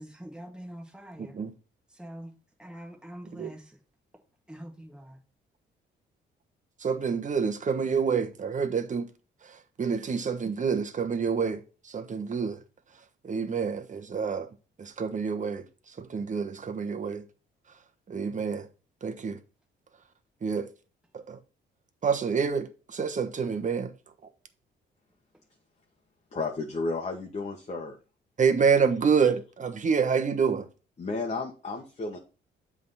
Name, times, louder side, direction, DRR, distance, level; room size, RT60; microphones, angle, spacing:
voice 1, 0.0-1.4 1.9-2.3 2.6-3.8 4.5-5.2, equal, 5° right, 1.9 m, -44 dB
voice 2, 1.2-1.5 3.4-3.5 6.8-9.1 9.4-12.6 13.2-14.5 14.8-15.6 16.0-17.2 18.1-18.7 19.0-19.4 20.4-20.7 21.1-21.4 22.0-23.9 28.4-30.7, right 6 dB, 40° right, 1.2 m, -27 dB
voice 3, 26.3-28.0 31.0-32.2, left 3 dB, 35° left, 1.3 m, -32 dB
7.7 x 3.7 x 5.6 m
cardioid pair, 90°, 20 cm